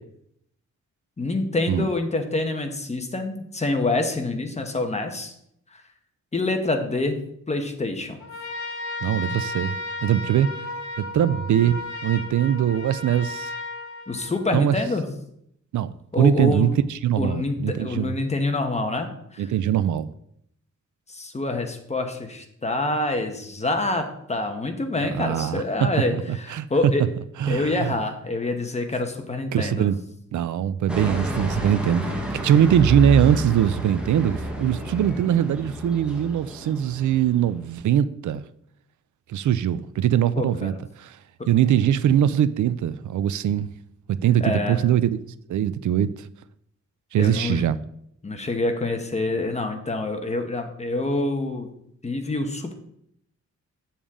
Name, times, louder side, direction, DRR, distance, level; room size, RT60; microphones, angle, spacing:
voice 1, 1.2-5.3 6.3-7.2 7.5-8.2 14.1-15.1 16.1-16.7 17.2-19.5 21.1-27.0 27.5-29.9 40.4-40.7 44.4-44.8 47.2-47.6 48.2-51.7 52.0-52.7, left 2 dB, 25° left, 1.0 m, -26 dB
Trumpet, 8.2-14.7, left 2 dB, 75° left, 1.7 m, -34 dB
voice 2, 9.0-9.8 10.0-10.5 11.0-13.5 14.5-14.8 15.7-18.1 19.4-20.1 25.1-26.7 27.4-27.9 29.5-30.0 30.3-32.1 32.4-38.4 39.3-41.2 41.5-43.7 44.1-45.2 45.5-46.3 47.1-47.8, right 10 dB, 85° right, 0.5 m, -22 dB
sound 1, 30.9-37.5, right 1 dB, 5° right, 1.3 m, -30 dB
8.6 x 7.1 x 3.7 m
wide cardioid pair, 140°, 29 cm